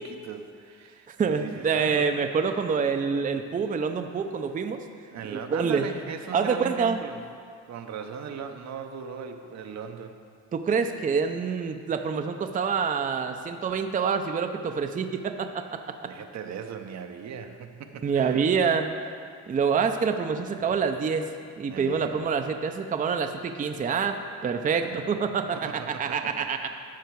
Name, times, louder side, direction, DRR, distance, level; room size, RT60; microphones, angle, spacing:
voice 1, 0.0-2.1 5.1-7.2 7.6-10.2 16.0-18.4 21.7-22.2 24.8-25.1 25.5-26.4, right 7 dB, 65° right, 6 dB, 0.7 m, -38 dB
voice 2, 1.1-4.8 5.3-5.9 6.3-7.0 10.5-16.1 18.0-18.9 19.5-21.3 21.6-26.6, right 6 dB, 25° right, 6 dB, 0.5 m, -26 dB
13.0 x 4.7 x 4.6 m, 2.2 s
cardioid pair, 90°, 30 cm